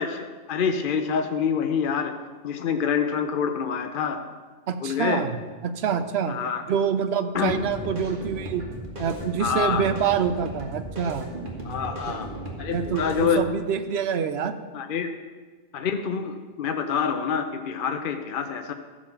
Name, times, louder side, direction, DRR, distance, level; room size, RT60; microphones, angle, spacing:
voice 1, 0.0-2.1 2.4-4.2 4.8-5.2 6.3-6.6 7.3-7.5 9.4-9.8 11.6-12.3 12.6-13.4 14.7-15.1 15.7-18.7, left 6 dB, 55° left, 6 dB, 0.7 m, -26 dB
voice 2, 4.7-6.4 6.7-8.6 9.0-11.3 12.1-12.2 12.7-14.5, right 7 dB, 65° right, 9 dB, 0.9 m, -26 dB
sound 1, 7.3-13.3, right 1 dB, 45° right, 2.1 m, -36 dB
13.5 x 5.1 x 6.9 m, 1.5 s
omnidirectional pair, 1.2 m